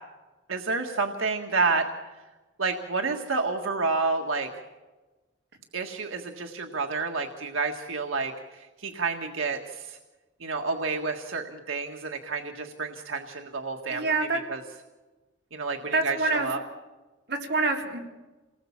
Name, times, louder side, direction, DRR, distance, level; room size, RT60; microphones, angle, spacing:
voice 1, 0.5-1.9 2.6-4.5 5.7-10.0 10.4-14.6 15.5-16.6, right 4 dB, 90° right, 2 dB, 1.7 m, -29 dB
voice 2, 13.9-14.4 15.9-16.5 17.3-18.0, right 3 dB, 55° right, -1 dB, 3.9 m, -26 dB
28.0 x 19.5 x 7.3 m, 1.2 s
head